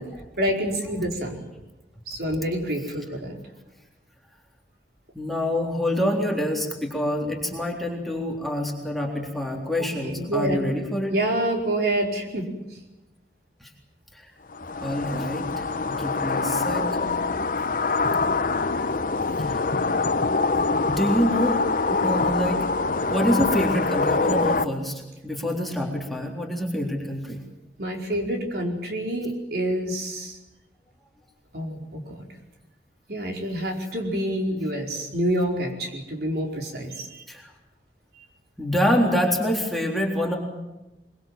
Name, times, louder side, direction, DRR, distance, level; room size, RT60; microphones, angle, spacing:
voice 1, 0.4-1.4 2.1-3.4 10.0-10.6 11.1-12.5 27.8-30.4 31.5-32.2 33.1-37.2, right 1 dB, 60° right, 1 dB, 4.8 m, -27 dB
voice 2, 5.1-11.1 13.6-13.7 14.1-14.3 14.8-16.9 19.4-20.0 20.8-22.6 23.0-27.4 37.3-37.5 38.6-40.4, equal, ahead, -1 dB, 3.7 m, -26 dB
sound 1, 14.5-24.7, left 3 dB, 50° left, 0.9 m, -24 dB
24.0 x 23.5 x 7.6 m, 1.0 s
head